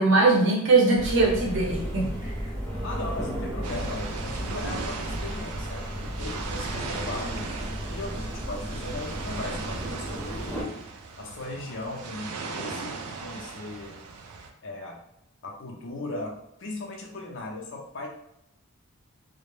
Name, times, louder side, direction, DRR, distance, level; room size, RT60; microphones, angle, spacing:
voice 1, 0.0-2.5, right 3 dB, 55° right, -2 dB, 0.7 m, -21 dB
sound 1, 0.9-10.6, equal, 5° left, 0.6 m, -34 dB
voice 2, 2.6-7.5 7.9-10.8 11.2-14.0 14.6-15.0 15.4-18.1, left 2 dB, 55° left, 0 dB, 0.5 m, -37 dB
sound 2, 3.6-14.5, right 4 dB, 85° right, 0.4 m, -38 dB
2.2 x 2.0 x 3.1 m, 0.80 s
head